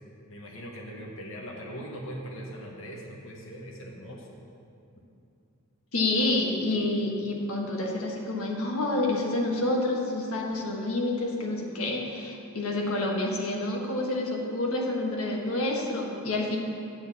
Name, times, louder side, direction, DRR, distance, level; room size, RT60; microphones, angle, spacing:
voice 1, 0.3-4.4, equal, 65° left, -2 dB, 1.1 m, -40 dB
voice 2, 5.9-16.6, left 2 dB, 85° left, -1 dB, 1.3 m, -28 dB
8.5 x 4.2 x 7.1 m, 2.6 s
head